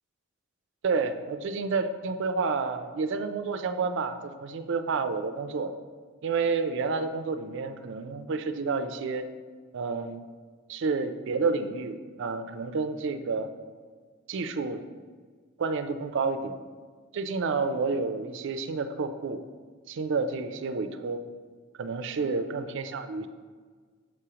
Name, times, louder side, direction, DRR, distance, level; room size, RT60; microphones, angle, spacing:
voice 1, 0.8-5.7 6.2-9.3 9.7-10.2 10.7-13.5 14.3-14.8 15.6-16.5 17.1-19.4 19.9-21.2 21.7-23.3, right 4 dB, 65° right, 9 dB, 0.4 m, -30 dB
7.2 x 2.9 x 4.8 m, 1.5 s
head